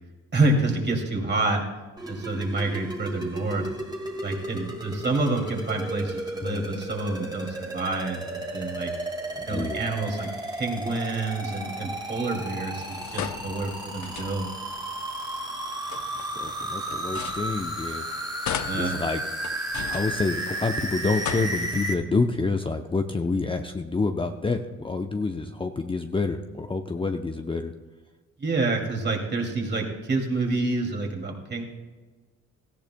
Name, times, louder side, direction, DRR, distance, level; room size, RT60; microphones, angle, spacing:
voice 1, 0.3-1.6 2.1-3.7 4.2-8.2 8.5-8.9 9.4-10.3 10.6-14.5 18.6-19.0 28.4-31.6, right 2 dB, 35° right, 1 dB, 2.5 m, -27 dB
sound 1, 2.0-21.9, right 1 dB, 15° right, 1.8 m, -34 dB
voice 2, 9.4-9.8 16.4-18.1 18.7-19.2 19.9-27.7, left 3 dB, 15° left, 5 dB, 0.6 m, -28 dB
sound 2, 12.8-14.7 15.7-18.0 18.4-20.7 21.0-22.1, left 9 dB, 70° left, 0.7 m, -37 dB
17.5 x 14.0 x 2.2 m, 1.3 s
cardioid pair, 90°, 30 cm